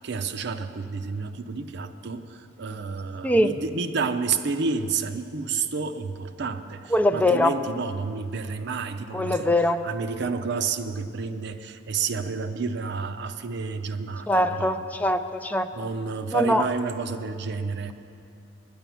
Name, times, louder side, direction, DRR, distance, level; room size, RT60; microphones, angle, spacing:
voice 1, 0.0-14.8 15.7-17.9, right 5 dB, 60° right, 9 dB, 0.6 m, -30 dB
voice 2, 3.2-3.5 6.9-7.6 9.1-9.8 14.3-15.9 16.3-16.7, left 1 dB, 10° left, 7 dB, 0.4 m, -22 dB
10.0 x 8.7 x 9.2 m, 2.6 s
head